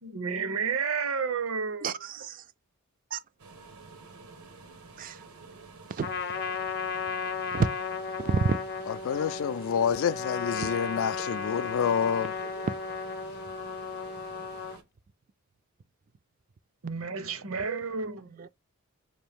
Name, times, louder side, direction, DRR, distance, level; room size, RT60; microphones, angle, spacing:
voice 1, 0.0-2.0 16.8-18.5, right 5 dB, 70° right, 0.8 m, -31 dB
voice 2, 1.8-2.4 3.1-3.2 5.0-5.2 5.9-6.1 7.5-7.7 8.2-8.6 10.6-10.9 11.7-11.8 12.6-13.2 18.3-18.5, right 4 dB, 40° right, 0.3 m, -30 dB
sound 1, 3.4-14.8, right 3 dB, 90° right, 1.2 m, -50 dB
Trumpet, 6.0-14.8, left 5 dB, 45° left, 0.7 m, -34 dB
voice 3, 8.9-12.3, left 7 dB, 65° left, 0.3 m, -28 dB
5.2 x 2.6 x 3.5 m
head